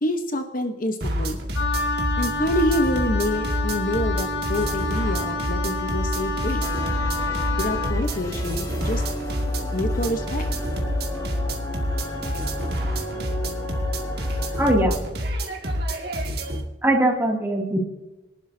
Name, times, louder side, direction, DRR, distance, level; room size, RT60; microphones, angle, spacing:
voice 1, 0.0-1.4 2.2-6.6 7.6-9.0 9.7-10.4, left 1 dB, 45° left, 6 dB, 1.0 m, -27 dB
sound 1, 1.0-16.6, equal, 60° right, 2.1 m, -28 dB
Wind instrument woodwind instrument, 1.5-8.0, left 3 dB, 75° left, 2.0 m, -29 dB
sound 2, 6.6-14.7, left 1 dB, 20° left, 2.0 m, -34 dB
voice 2, 14.6-15.0 16.8-17.8, right 1 dB, 10° right, -1 dB, 2.5 m, -21 dB
23.5 x 11.5 x 2.7 m, 1.0 s
head